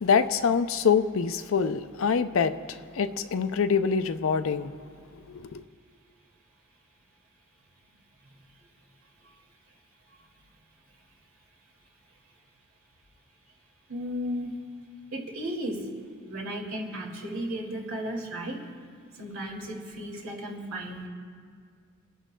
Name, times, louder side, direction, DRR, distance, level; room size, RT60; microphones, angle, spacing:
voice 1, 0.0-4.7 5.3-5.6, left 6 dB, 65° left, 10 dB, 0.5 m, -25 dB
voice 2, 13.9-14.6 15.1-15.9 16.3-18.6 19.2-21.1, equal, 80° right, 0 dB, 2.2 m, -34 dB
28.5 x 11.0 x 2.2 m, 2.1 s
head